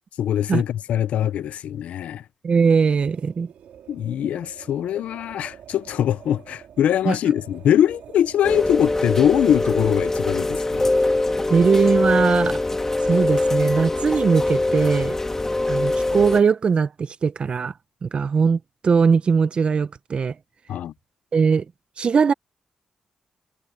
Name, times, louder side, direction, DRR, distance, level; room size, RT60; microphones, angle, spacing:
voice 1, 0.2-2.2 3.9-10.9 20.7-20.9, left 10 dB, 90° left, 0.7 m, -22 dB
voice 2, 2.4-3.5 7.0-7.2 11.5-12.6 13.0-15.1 15.7-17.7 18.0-20.3 21.3-21.6 22.0-22.3, right 5 dB, 55° right, 1.2 m, -20 dB
sound 1, 2.9-10.3, right 9 dB, 85° right, 3.2 m, -46 dB
Rain, 8.4-16.4, left 2 dB, 20° left, 1.8 m, -22 dB
cardioid pair, 75°, 2 cm